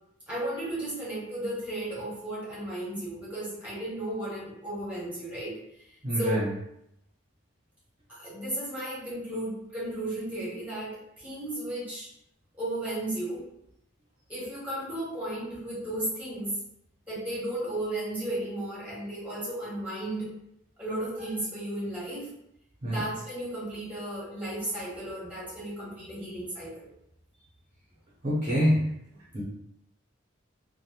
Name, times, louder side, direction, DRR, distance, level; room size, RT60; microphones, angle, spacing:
voice 1, 0.3-5.5 6.1-6.4 8.1-12.1 12.6-13.4 14.3-16.6 17.1-20.3 20.8-22.3 22.8-26.9, right 1 dB, 5° right, -9 dB, 1.0 m, -34 dB
voice 2, 6.0-6.5 22.8-23.0 28.2-28.9 29.3-29.4, equal, 35° right, -8 dB, 0.7 m, -25 dB
2.9 x 2.1 x 2.3 m, 0.76 s
head